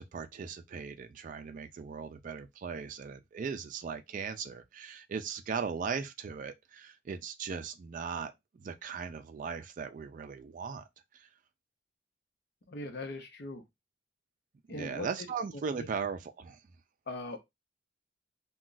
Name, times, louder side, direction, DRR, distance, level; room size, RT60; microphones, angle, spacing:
voice 1, 0.0-10.8 11.1-11.3 14.7-16.6, right 6 dB, 45° right, 0.3 m, -38 dB
voice 2, 12.7-13.6 14.7-15.1 15.8-15.9 17.1-17.4, left 2 dB, 60° left, 0.8 m, -40 dB
2.3 x 2.3 x 3.8 m
head